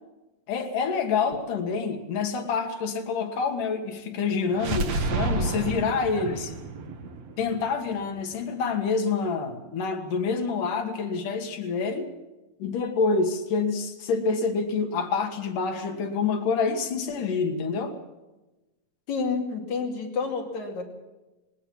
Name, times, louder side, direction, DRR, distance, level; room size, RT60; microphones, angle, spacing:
voice 1, 0.5-6.5 7.4-12.1 12.6-18.0, left 5 dB, 75° left, 4 dB, 3.3 m, -27 dB
sound 1, 4.5-8.4, right 3 dB, 60° right, 2.6 m, -30 dB
voice 2, 19.1-20.9, left 4 dB, 60° left, 1 dB, 3.8 m, -30 dB
19.5 x 18.0 x 7.4 m, 1.1 s
omnidirectional pair, 3.8 m